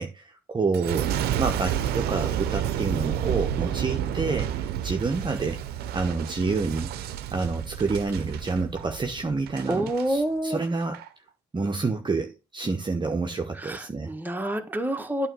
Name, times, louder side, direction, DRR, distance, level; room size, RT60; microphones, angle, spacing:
voice 1, 0.0-5.6 5.9-6.9 7.3-11.0 11.5-14.1, right 4 dB, 30° right, 0.9 m, -28 dB
Boom, 0.7-10.1 10.6-11.1, right 10 dB, 80° right, 0.6 m, -30 dB
voice 2, 9.7-10.6 13.6-15.3, right 1 dB, 10° right, 1.3 m, -28 dB
8.9 x 3.1 x 6.2 m
supercardioid pair, 55°, 16 cm